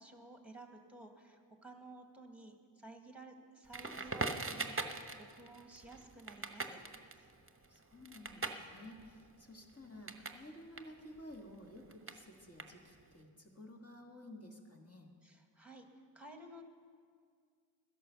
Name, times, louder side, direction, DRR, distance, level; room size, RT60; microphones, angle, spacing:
voice 1, 0.0-6.8 7.2-7.3 15.2-15.9 16.1-16.6, right 2 dB, 5° right, 4 dB, 1.6 m, -54 dB
Crackle, 3.7-10.4 10.7-13.1, right 3 dB, 25° right, 1.0 m, -42 dB
voice 2, 7.7-15.1, left 1 dB, 30° left, 1 dB, 1.8 m, -53 dB
13.5 x 11.0 x 6.9 m, 2.1 s
wide cardioid pair, 55°, 47 cm